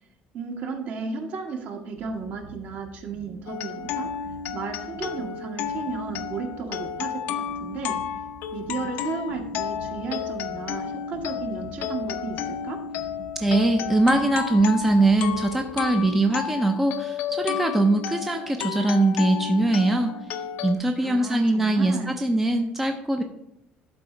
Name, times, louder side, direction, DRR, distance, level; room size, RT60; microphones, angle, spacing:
voice 1, 0.3-4.3 4.5-8.0 8.5-12.8 21.0-22.3, right 5 dB, 50° right, 4 dB, 1.4 m, -34 dB
sound 1, 2.0-16.6, right 2 dB, 85° right, 2.5 m, -46 dB
sound 2, 3.5-20.7, left 8 dB, 65° left, 0.6 m, -32 dB
voice 2, 13.4-20.1 20.6-23.2, right 2 dB, 5° right, 4 dB, 0.5 m, -22 dB
11.5 x 4.3 x 4.9 m, 0.85 s
cardioid pair, 165°, 4 cm